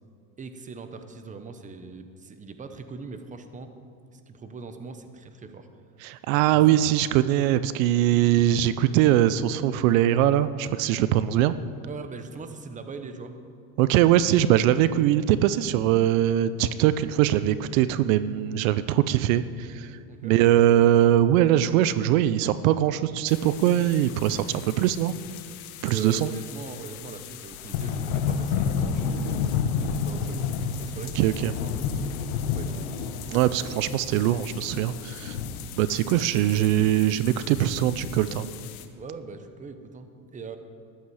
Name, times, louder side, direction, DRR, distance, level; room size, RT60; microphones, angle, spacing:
voice 1, 0.4-3.7 4.1-5.7 6.5-6.8 11.9-13.4 20.1-20.4 25.9-33.0 38.9-40.6, right 4 dB, 20° right, 8 dB, 0.9 m, -41 dB
voice 2, 6.0-11.5 13.8-19.9 20.2-25.1 25.8-26.3 31.2-31.5 33.3-35.4 35.8-38.5, right 12 dB, 70° right, 14 dB, 0.6 m, -22 dB
sound 1, 23.3-38.8, left 6 dB, 90° left, 1.1 m, -32 dB
14.0 x 11.5 x 4.8 m, 2.4 s
supercardioid pair, 120°, 41 cm